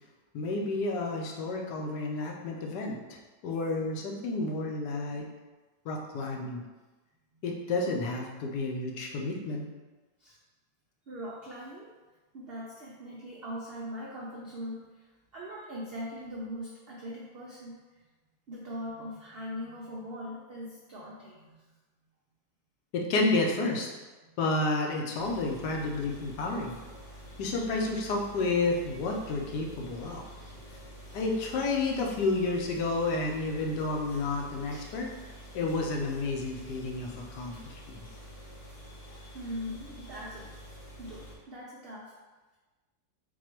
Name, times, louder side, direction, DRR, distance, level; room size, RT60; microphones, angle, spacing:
voice 1, 0.3-5.3 5.8-6.6 7.4-9.6 22.9-23.9 24.4-26.7 27.4-30.2 31.1-35.1 35.5-38.0, left 2 dB, 80° left, 0 dB, 1.2 m, -30 dB
voice 2, 11.0-11.9 12.3-17.8 18.5-21.6 30.3-30.5 34.7-34.9 35.4-35.5 39.3-40.5 41.0-42.1, equal, 80° right, -5 dB, 0.5 m, -41 dB
sound 1, 25.2-41.3, equal, 45° left, 0.9 m, -48 dB
4.2 x 2.3 x 4.4 m, 1.2 s
omnidirectional pair, 1.9 m